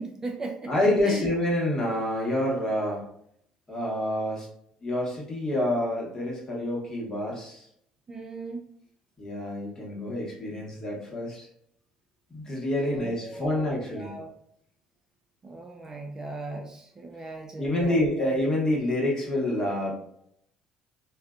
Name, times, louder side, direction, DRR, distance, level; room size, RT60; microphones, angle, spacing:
voice 1, 0.0-0.7 1.0-1.3 8.1-8.7 12.8-14.3 15.4-18.0, right 3 dB, 30° right, 2 dB, 0.4 m, -38 dB
voice 2, 0.7-3.0 3.7-4.5 4.8-7.7 9.2-11.5 12.3-14.1 17.6-19.9, left 1 dB, 30° left, -3 dB, 1.2 m, -27 dB
2.5 x 2.3 x 2.3 m, 0.69 s
supercardioid pair, 80°, 2 cm